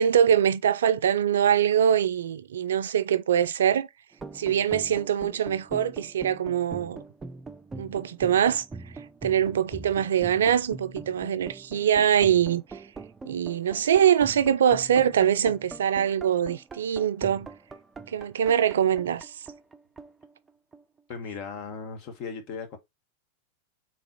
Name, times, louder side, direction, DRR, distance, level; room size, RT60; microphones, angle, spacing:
voice 1, 0.0-3.9 4.3-7.0 7.8-8.6 9.2-12.6 13.2-17.5 18.1-19.3, right 9 dB, 75° right, 0.4 m, -23 dB
sound 1, 4.1-21.0, right 3 dB, 15° right, 0.5 m, -42 dB
voice 2, 21.1-22.8, left 5 dB, 50° left, 1.3 m, -37 dB
3.9 x 2.9 x 4.2 m
hypercardioid pair, 100°, 0 cm